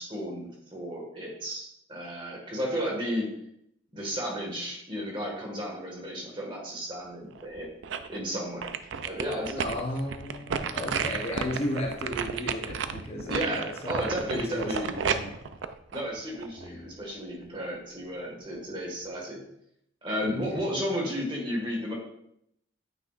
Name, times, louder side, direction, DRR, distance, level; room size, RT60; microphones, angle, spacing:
voice 1, 0.0-3.3 3.9-7.7 8.1-8.7 9.0-9.6 13.2-14.9 15.9-19.4 20.0-21.9, equal, 25° right, -1 dB, 1.7 m, -33 dB
sound 1, 7.4-8.2 8.6-16.7 17.1-17.2, right 6 dB, 80° right, 0.4 m, -32 dB
voice 2, 9.6-15.4 16.6-16.9 20.3-20.6, left 1 dB, 35° left, 1 dB, 0.8 m, -35 dB
9.2 x 5.9 x 2.5 m, 0.74 s
head